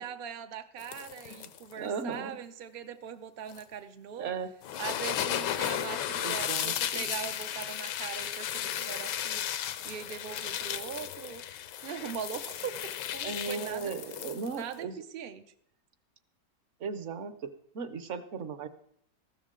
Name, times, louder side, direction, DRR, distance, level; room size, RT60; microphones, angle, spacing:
voice 1, 0.0-4.3 4.8-9.5 9.8-11.4 11.8-13.9 14.4-15.4, right 8 dB, 75° right, 8 dB, 0.5 m, -41 dB
sound 1, 0.8-1.7 3.5-3.6 4.6-14.7, left 11 dB, 80° left, 1.3 m, -35 dB
voice 2, 1.8-2.4 4.2-4.5 6.2-7.1 13.2-15.0 16.8-18.7, right 5 dB, 55° right, 12 dB, 0.9 m, -37 dB
14.0 x 12.5 x 3.7 m, 0.71 s
omnidirectional pair, 1.9 m